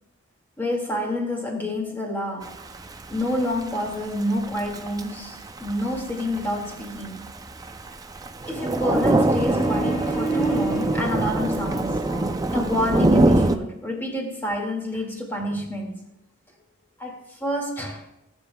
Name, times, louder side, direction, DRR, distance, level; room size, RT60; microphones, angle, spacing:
voice 1, 0.6-2.6 3.1-7.3 8.5-12.0 12.5-16.0 17.0-18.1, left 1 dB, 10° left, 2.0 m, -28 dB
Thunder / Rain, 2.4-13.6, right 2 dB, 20° right, 0.4 m, -24 dB
sound 1, 8.4-12.4, right 2 dB, 50° left, 2.5 m, -30 dB
20.5 x 7.1 x 2.3 m
head